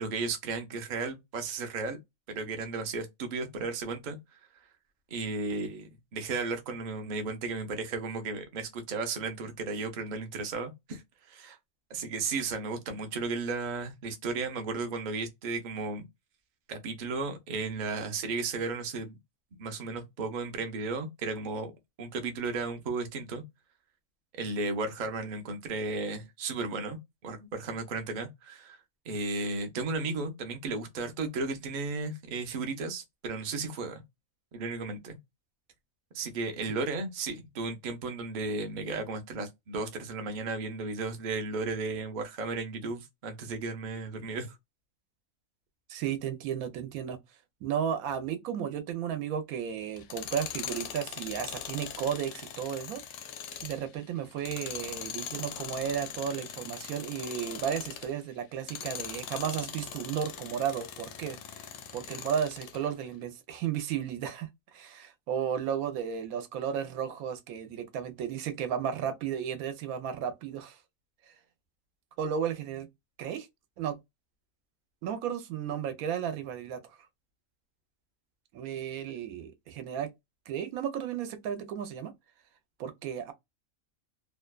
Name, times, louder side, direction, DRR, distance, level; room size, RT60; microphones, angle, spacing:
voice 1, 0.0-2.0 2.3-4.2 5.1-11.0 11.3-11.6 11.9-16.1 16.7-19.2 19.6-21.7 22.0-23.4 24.3-28.8 29.1-34.0 34.5-35.2 36.1-44.6, right 3 dB, 55° right, 0.5 m, -34 dB
voice 2, 45.9-47.2 47.6-53.0 53.6-61.4 61.9-70.8 72.2-72.9 73.2-73.5 73.8-74.0 75.0-76.8 78.5-80.1 80.5-82.1 82.8-83.3, right 8 dB, 90° right, 1.1 m, -34 dB
Tools, 50.0-58.2 58.6-62.8, left 8 dB, 65° left, 0.8 m, -41 dB
2.7 x 2.2 x 2.2 m
omnidirectional pair, 1.5 m